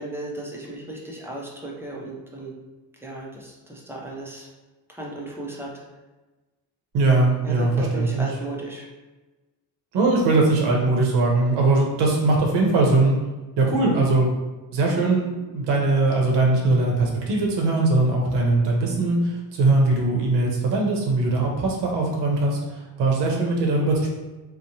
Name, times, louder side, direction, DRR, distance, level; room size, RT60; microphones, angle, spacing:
voice 1, 0.0-2.5 3.0-4.5 4.9-5.7 7.4-8.9, right 1 dB, 5° right, -3 dB, 0.4 m, -35 dB
voice 2, 6.9-8.3 9.9-13.2 13.6-14.3 14.7-24.1, right 2 dB, 85° right, -1 dB, 0.7 m, -21 dB
2.9 x 2.1 x 2.7 m, 1.2 s
cardioid pair, 135°, 41 cm